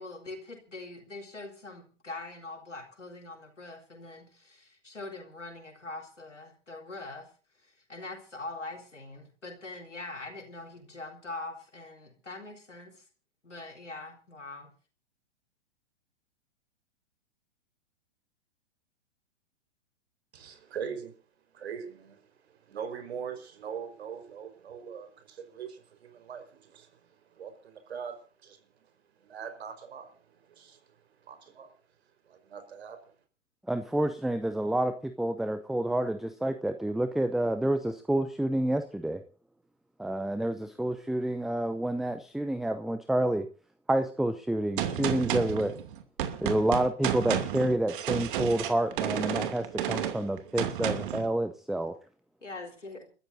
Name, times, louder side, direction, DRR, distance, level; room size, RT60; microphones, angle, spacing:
voice 1, 0.0-7.3 7.6-13.0 13.4-14.7 52.4-53.1, left 2 dB, 85° left, 1 dB, 4.1 m, -43 dB
voice 2, 20.3-21.1 21.5-28.9 29.2-31.7 32.2-33.0, right 7 dB, 60° right, 8 dB, 4.7 m, -42 dB
voice 3, 33.7-39.2 40.0-43.5 43.9-45.7 46.4-51.9, right 1 dB, ahead, 10 dB, 0.6 m, -29 dB
Gunshot gunfire, 44.8-51.3, right 10 dB, 45° right, 2.7 m, -32 dB
30.0 x 13.5 x 2.7 m, 0.38 s
figure-of-eight pair, 110°, 35 cm